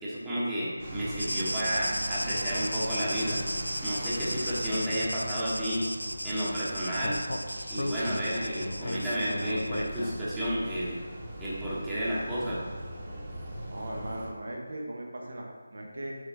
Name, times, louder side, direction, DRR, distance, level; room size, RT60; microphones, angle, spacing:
voice 1, 0.0-3.4 3.8-5.8 6.2-7.2 7.7-11.0 11.4-12.6, equal, 10° right, -9 dB, 1.4 m, -31 dB
sound 1, 0.8-14.3, equal, 25° right, 1.8 m, -40 dB
sound 2, 1.2-10.1, equal, 85° right, 0.3 m, -36 dB
Speech, 7.0-10.4, left 1 dB, 65° left, 0.7 m, -36 dB
voice 2, 13.6-16.2, right 1 dB, 55° right, 0 dB, 1.4 m, -38 dB
6.9 x 5.1 x 4.3 m, 1.4 s
figure-of-eight pair, 160°, 0 cm